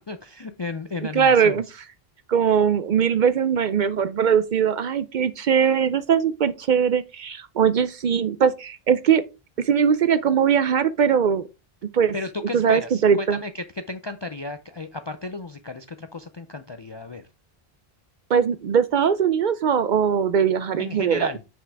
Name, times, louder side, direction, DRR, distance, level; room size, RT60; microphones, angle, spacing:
voice 1, 0.1-1.6 12.1-17.2 20.8-21.4, left 2 dB, 45° left, 0.3 m, -34 dB
voice 2, 1.1-1.6 2.3-9.2 9.6-11.4 11.9-12.1 12.5-13.4 18.3-21.3, right 7 dB, 60° right, 0.6 m, -20 dB
7.3 x 5.8 x 3.4 m
omnidirectional pair, 1.0 m